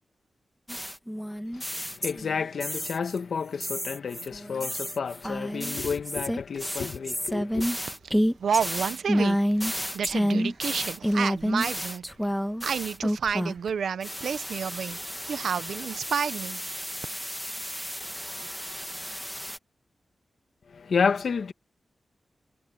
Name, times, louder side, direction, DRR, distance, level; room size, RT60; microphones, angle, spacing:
sound 1, 0.7-3.2 3.6-13.7 14.0-19.6, equal, ahead, 1.6 m, -30 dB
voice 1, 1.5-7.7 20.7-21.5, left 5 dB, 75° left, 1.6 m, -30 dB
voice 2, 8.4-12.1 12.6-15.0 15.3-16.6, right 7 dB, 90° right, 0.8 m, -30 dB
wide cardioid pair, 90°, 0 cm